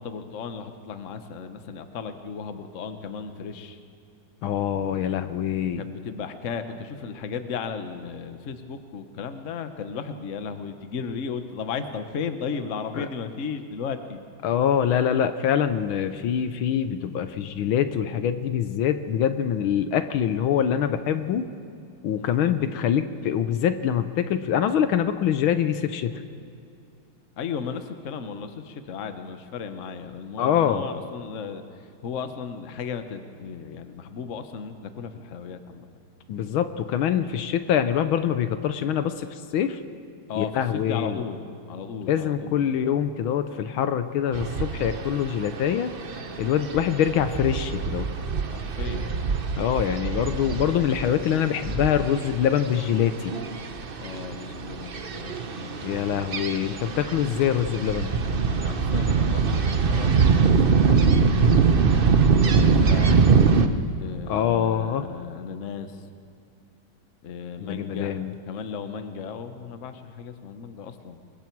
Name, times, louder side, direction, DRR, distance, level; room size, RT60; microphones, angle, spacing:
voice 1, 0.0-3.8 5.8-14.2 22.2-22.5 27.4-35.9 40.3-42.7 48.5-49.1 54.0-55.9 58.5-62.2 62.6-63.2 64.0-66.1 67.2-71.2, left 6 dB, 45° left, 8 dB, 1.2 m, -35 dB
voice 2, 4.4-5.8 13.0-13.1 14.4-21.5 22.0-26.1 30.4-30.8 36.3-39.8 40.4-41.2 42.1-45.9 46.4-48.1 49.6-53.3 55.8-58.1 64.3-65.1 67.6-68.3, left 9 dB, 75° left, 10 dB, 1.5 m, -24 dB
sound 1, 44.3-63.7, right 5 dB, 70° right, 0.5 m, -23 dB
27.0 x 22.0 x 4.7 m, 2.4 s
omnidirectional pair, 2.4 m